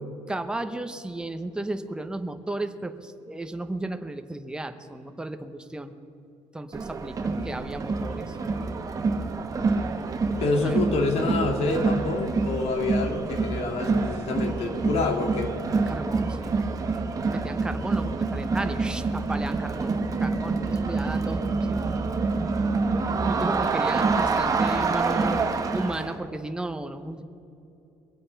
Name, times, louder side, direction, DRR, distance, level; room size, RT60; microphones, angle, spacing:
voice 1, 0.3-5.9 6.5-8.4 10.6-10.9 15.9-16.6 17.3-19.9 20.2-21.9 23.2-25.5 25.7-27.2, right 2 dB, 5° right, 7 dB, 0.8 m, -34 dB
Crowd, 6.7-26.2, right 4 dB, 30° right, 1.1 m, -27 dB
voice 2, 10.4-15.5, left 3 dB, 60° left, 4 dB, 2.1 m, -27 dB
22.5 x 8.5 x 5.7 m, 2.8 s
cardioid pair, 130°, 12 cm